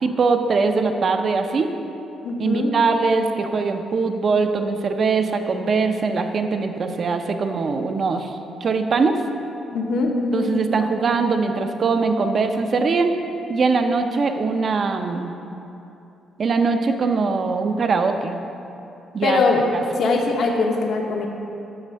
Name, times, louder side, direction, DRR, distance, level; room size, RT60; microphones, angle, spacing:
voice 1, 0.0-1.7 2.4-9.2 10.3-13.2 13.5-15.4 16.4-18.4 19.1-19.4 19.7-19.8, right 4 dB, 50° right, 6 dB, 0.5 m, -21 dB
voice 2, 2.2-2.7 9.7-10.6 19.2-19.7 20.0-21.3, left 3 dB, 65° left, 1 dB, 0.8 m, -21 dB
8.9 x 3.3 x 6.3 m, 2.8 s
cardioid pair, 90°, 0 cm